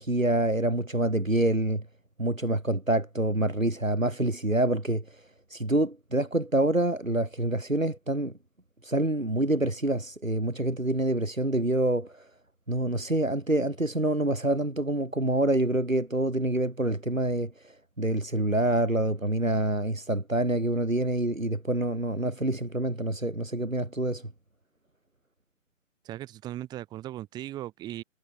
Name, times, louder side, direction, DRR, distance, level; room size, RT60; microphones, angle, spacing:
voice 1, 0.0-1.8 2.2-5.0 5.5-8.3 8.8-12.2 12.7-24.3, right 1 dB, 90° right, 3.8 m, -26 dB
voice 2, 26.0-28.0, right 13 dB, 10° right, 1.5 m, -38 dB
figure-of-eight pair, 135°, 39 cm